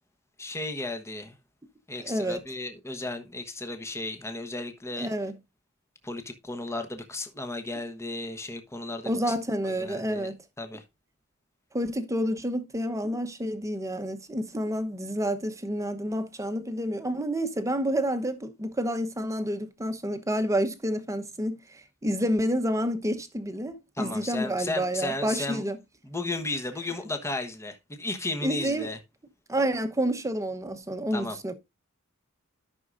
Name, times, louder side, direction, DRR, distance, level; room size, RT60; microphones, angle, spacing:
voice 1, 0.4-1.4 1.9-5.1 6.0-9.3 9.6-10.8 24.0-25.6 26.0-29.0 31.1-31.4, left 2 dB, 15° left, 1.1 m, -34 dB
voice 2, 2.0-2.4 5.0-5.4 9.1-10.4 11.7-25.8 28.4-28.9 29.5-31.6, equal, 15° right, 1.0 m, -29 dB
13.0 x 6.2 x 2.6 m
head